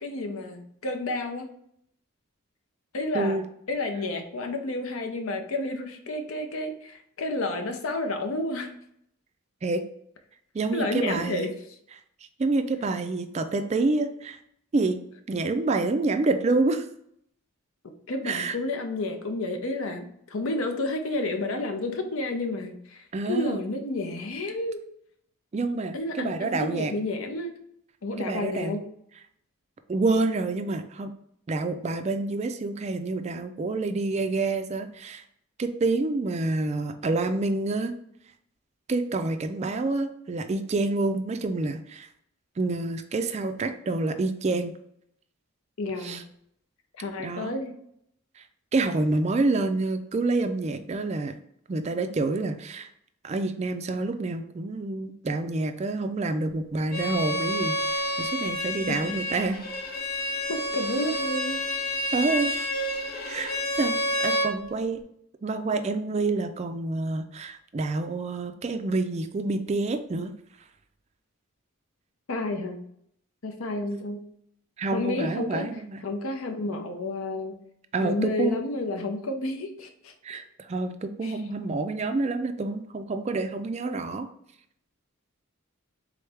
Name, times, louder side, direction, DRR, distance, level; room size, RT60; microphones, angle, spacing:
voice 1, 0.0-1.5 2.9-3.4 3.7-8.7 10.7-11.5 18.1-24.8 25.9-27.6 28.0-28.8 45.8-46.2 47.0-47.7 58.9-59.2 60.5-61.6 72.3-72.8 73.4-74.3 74.9-75.7 76.0-77.5 78.0-80.1 81.2-81.3, left 2 dB, 75° left, 5 dB, 0.7 m, -30 dB
voice 2, 3.1-3.5 9.6-9.8 10.5-11.5 12.4-14.4 14.7-15.0 15.3-16.8 18.2-18.6 23.1-23.6 25.5-26.9 28.2-28.8 29.9-31.1 31.5-35.2 35.6-38.0 38.9-42.1 42.6-44.8 46.0-46.2 47.2-47.5 48.4-48.5 48.7-51.3 51.7-52.9 53.2-59.6 62.1-62.5 63.3-65.0 65.4-70.3 74.8-76.0 77.9-78.6 80.2-84.3, right 3 dB, 30° right, 8 dB, 0.3 m, -28 dB
Bowed string instrument, 56.9-64.5, left 1 dB, 45° left, 0.7 m, -29 dB
3.8 x 3.2 x 3.4 m, 0.71 s
head